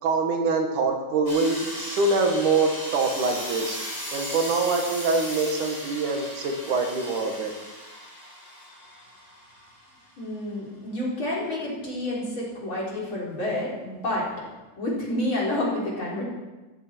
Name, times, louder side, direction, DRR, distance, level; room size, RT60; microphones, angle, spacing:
voice 1, 0.0-3.8 4.1-7.5, right 3 dB, 75° right, 3 dB, 3.1 m, -24 dB
sound 1, 1.3-9.9, equal, 5° left, 4.7 m, -37 dB
voice 2, 10.2-14.2 14.8-16.2, left 1 dB, 40° left, -5 dB, 4.8 m, -29 dB
16.5 x 14.0 x 4.5 m, 1.1 s
omnidirectional pair, 3.6 m